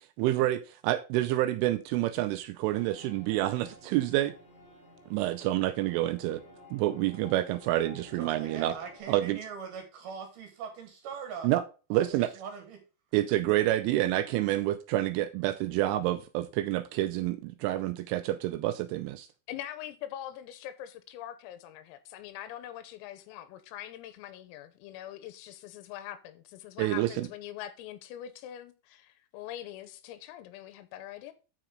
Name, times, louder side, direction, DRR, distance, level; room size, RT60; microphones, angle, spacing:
voice 1, 0.2-4.3 5.1-6.4 6.7-8.8 9.1-9.4 11.4-11.6 11.9-12.3 13.1-19.3 26.8-27.3, right 15 dB, 85° right, 2.9 m, -28 dB
sound 1, 2.7-9.0, left 1 dB, 25° left, 4.3 m, -53 dB
voice 2, 8.2-11.5 11.9-12.8, right 6 dB, 65° right, 2.8 m, -42 dB
voice 3, 19.5-31.3, left 12 dB, 85° left, 3.7 m, -43 dB
12.0 x 5.1 x 3.7 m
omnidirectional pair, 5.9 m